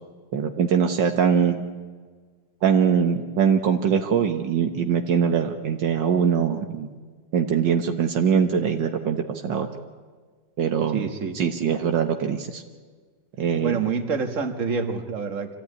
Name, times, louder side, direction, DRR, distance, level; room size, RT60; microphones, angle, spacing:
voice 1, 0.3-1.6 2.6-6.9 7.3-9.7 10.6-11.0 11.4-12.6 13.4-13.7, right 7 dB, 70° right, 5 dB, 1.8 m, -22 dB
voice 2, 10.9-11.4 13.6-15.6, right 5 dB, 45° right, 6 dB, 2.0 m, -27 dB
26.0 x 16.0 x 9.6 m, 1.5 s
omnidirectional pair, 2.1 m